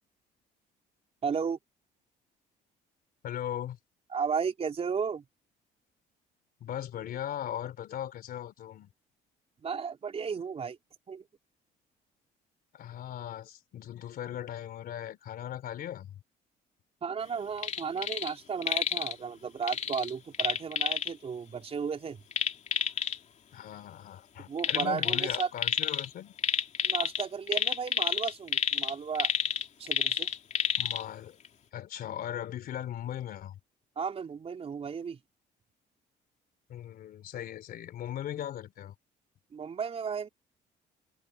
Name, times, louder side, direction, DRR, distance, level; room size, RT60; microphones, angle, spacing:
voice 1, 1.2-1.6 4.1-5.2 9.6-10.8 11.1-11.2 17.0-22.2 24.5-25.5 26.8-29.3 29.8-30.3 34.0-35.2 39.5-40.3, right 6 dB, 35° right, 3.8 m, -34 dB
voice 2, 3.2-3.8 6.6-8.9 12.7-16.1 23.5-26.3 30.7-31.4 31.7-33.6 36.7-38.9, left 11 dB, 60° left, 3.3 m, -38 dB
sound 1, 17.6-18.3 18.6-19.1 19.7-21.1 22.3-23.2 24.6-26.1 26.4-31.0 31.4-31.5, left 7 dB, 45° left, 3.0 m, -29 dB
cardioid pair, 110°, 17 cm